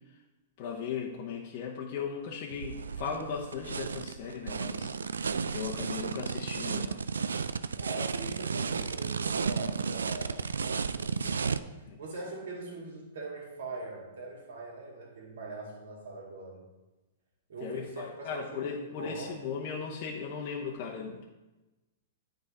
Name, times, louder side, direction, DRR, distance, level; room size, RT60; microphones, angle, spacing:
voice 1, 0.6-7.0 11.9-12.0 17.6-21.2, left 6 dB, 45° left, -2 dB, 0.9 m, -37 dB
sound 1, 2.5-11.6, right 5 dB, 85° right, 0.3 m, -33 dB
voice 2, 7.8-16.6 17.5-19.4, right 2 dB, 65° right, -1 dB, 2.2 m, -42 dB
9.5 x 3.9 x 4.2 m, 1.1 s
hypercardioid pair, 115°, 0 cm